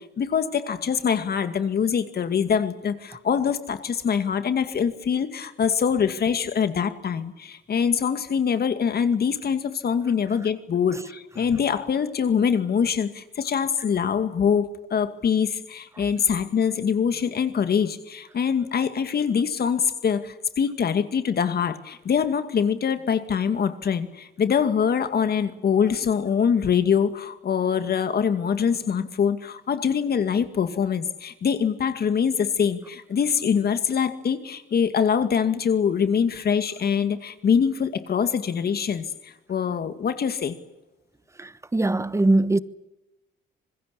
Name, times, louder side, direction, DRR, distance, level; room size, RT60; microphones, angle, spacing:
voice 1, 0.0-40.6, left 7 dB, 50° left, 2.2 m, -24 dB
voice 2, 41.4-42.6, right 2 dB, 15° right, 1.1 m, -21 dB
26.0 x 21.5 x 8.5 m
cardioid pair, 90°, 20 cm